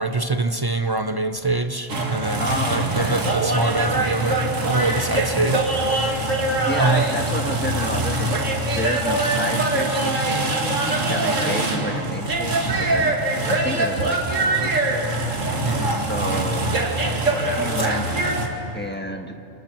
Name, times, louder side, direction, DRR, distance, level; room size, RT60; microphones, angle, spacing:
voice 1, 0.0-7.1 8.1-8.3 15.6-16.1 17.8-17.9, right 3 dB, 30° right, 8 dB, 0.4 m, -25 dB
sound 1, 1.9-18.5, right 2 dB, 70° right, 2.4 m, -23 dB
voice 2, 2.4-3.2 6.6-8.4 8.8-10.5 11.1-14.9 15.9-16.7 17.4-18.3 18.7-19.3, left 1 dB, 10° left, 4 dB, 1.3 m, -30 dB
27.0 x 27.0 x 4.5 m, 2.8 s
omnidirectional pair, 1.4 m